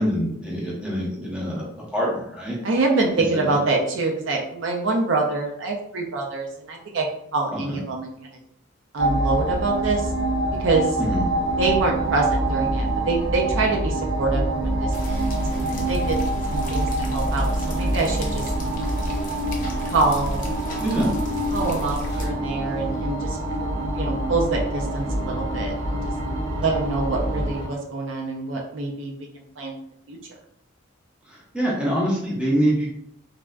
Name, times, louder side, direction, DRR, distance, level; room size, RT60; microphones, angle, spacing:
voice 1, 0.0-2.6 3.3-3.4 7.5-7.8 11.0-11.2 20.8-21.1 31.3-32.9, equal, 5° right, -6 dB, 0.7 m, -25 dB
voice 2, 2.6-7.1 7.3-8.4 8.9-10.1 10.6-11.0 11.6-16.2 16.5-18.5 19.9-20.5 21.5-26.1 26.6-29.1 29.6-29.7 30.1-30.2, right 3 dB, 65° right, 1 dB, 0.5 m, -25 dB
sound 1, 9.0-27.7, right 1 dB, 85° right, 1.3 m, -26 dB
sound 2, 14.9-22.3, left 1 dB, 40° left, 0.5 m, -34 dB
3.3 x 2.5 x 2.2 m, 0.72 s
head